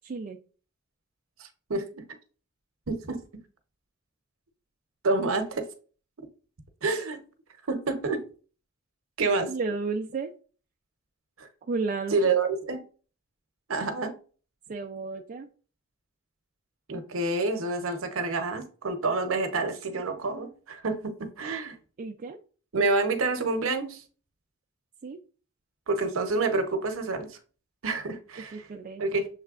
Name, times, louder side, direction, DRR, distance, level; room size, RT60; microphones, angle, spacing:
voice 1, 0.0-0.4 9.5-10.3 11.7-12.2 14.7-15.5 22.0-22.4 25.0-25.2 28.5-29.0, right 4 dB, 40° right, 3 dB, 0.3 m, -32 dB
voice 2, 1.4-2.0 2.9-3.2 5.0-5.7 6.2-6.3 6.8-7.2 7.7-8.2 9.2-9.5 11.4-11.5 12.1-12.8 13.7-14.1 16.9-21.8 22.7-24.0 25.9-27.4 27.8-28.7 29.0-29.3, right 3 dB, 75° right, 7 dB, 0.8 m, -28 dB
6.6 x 3.2 x 2.4 m, 0.39 s
head